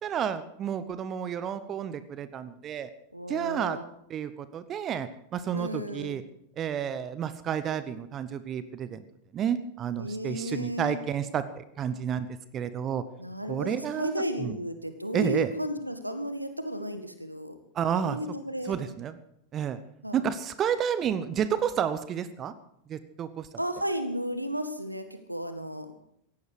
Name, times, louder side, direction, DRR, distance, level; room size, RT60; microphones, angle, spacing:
voice 1, 0.0-2.9 3.3-3.8 4.1-6.2 6.6-9.0 9.3-13.0 13.5-14.5 15.1-15.5 17.7-18.2 18.6-19.2 19.5-19.8 20.1-22.5 22.9-23.5, right 8 dB, 30° right, 14 dB, 0.9 m, -31 dB
voice 2, 3.1-3.8 5.5-6.1 10.0-11.0 13.2-17.5 18.0-18.8 20.0-20.2 23.6-25.9, equal, 85° right, 9 dB, 1.8 m, -33 dB
18.0 x 15.0 x 4.9 m, 0.73 s
figure-of-eight pair, 90°, 0 cm